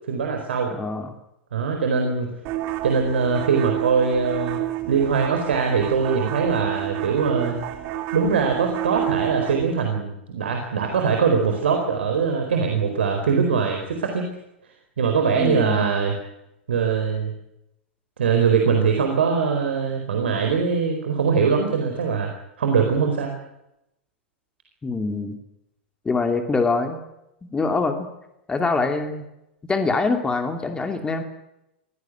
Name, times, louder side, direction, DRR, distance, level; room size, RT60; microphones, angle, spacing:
voice 1, 0.1-0.7 1.5-2.3 2.8-4.6 4.9-7.5 8.1-14.3 15.0-16.1 16.7-17.3 18.2-23.3, right 5 dB, 70° right, 4 dB, 4.4 m, -22 dB
voice 2, 0.7-1.1 15.3-15.9 24.8-25.4 26.0-27.0 27.5-28.0 28.5-29.2 29.7-31.2, left 3 dB, 15° left, 6 dB, 2.8 m, -24 dB
sound 1, 2.4-9.7, right 14 dB, 40° right, 3.1 m, -30 dB
24.0 x 17.5 x 9.4 m, 0.86 s
figure-of-eight pair, 100°, 6 cm